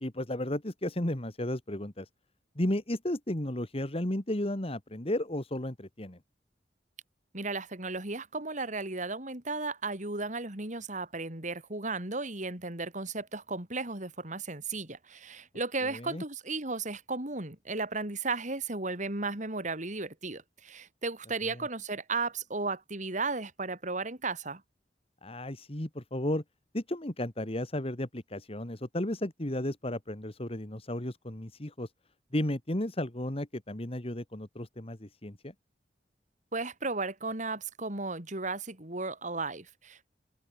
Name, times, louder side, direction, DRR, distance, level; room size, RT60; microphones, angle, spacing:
voice 1, 0.0-2.1 2.6-6.2 15.9-16.2 25.2-26.4 26.7-31.9 32.3-35.5, left 1 dB, 35° left, 2.2 m, -33 dB
voice 2, 7.3-24.6 36.5-40.1, right 3 dB, 45° right, 3.7 m, -35 dB
open air
head